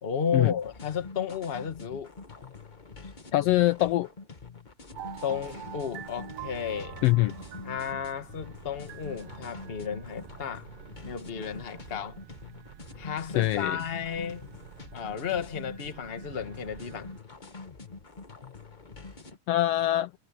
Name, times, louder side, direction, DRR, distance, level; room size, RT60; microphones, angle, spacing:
voice 1, 0.0-2.1 5.2-7.0 7.6-10.7 11.0-12.2 13.0-14.4 14.9-17.1, left 7 dB, 30° left, 1.1 m, -33 dB
sound 1, 0.6-19.4, left 4 dB, 45° left, 0.5 m, -45 dB
voice 2, 3.3-4.1 7.0-7.3 13.3-13.8 19.5-20.1, left 16 dB, 85° left, 1.4 m, -23 dB
sound 2, 4.9-17.2, right 11 dB, 65° right, 2.0 m, -47 dB
omnidirectional pair, 3.4 m